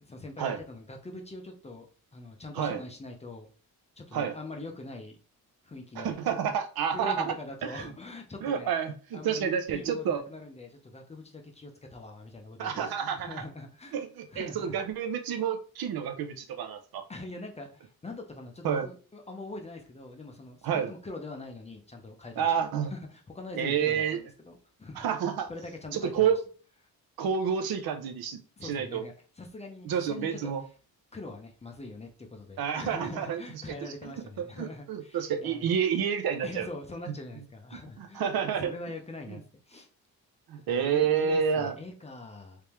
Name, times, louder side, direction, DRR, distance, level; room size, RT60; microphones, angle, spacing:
voice 1, 0.0-3.5 4.0-5.2 5.6-6.2 6.9-8.7 9.1-14.0 14.3-14.8 17.1-22.5 22.9-25.0 25.5-26.3 28.6-30.5 31.1-35.7 36.4-38.3 38.6-39.4 39.7-39.9 40.5-42.6, left 2 dB, 20° left, 2 dB, 0.5 m, -43 dB
voice 2, 6.0-7.3 7.6-7.9 8.4-10.2 12.6-13.4 13.9-17.0 18.6-18.9 20.6-20.9 22.4-22.9 23.6-24.2 25.0-25.5 25.9-26.4 27.2-29.0 29.8-30.6 32.6-36.7 38.0-38.7 40.5-41.7, right 7 dB, 75° right, 8 dB, 0.7 m, -29 dB
3.5 x 3.3 x 2.9 m, 0.39 s
wide cardioid pair, 150°, 37 cm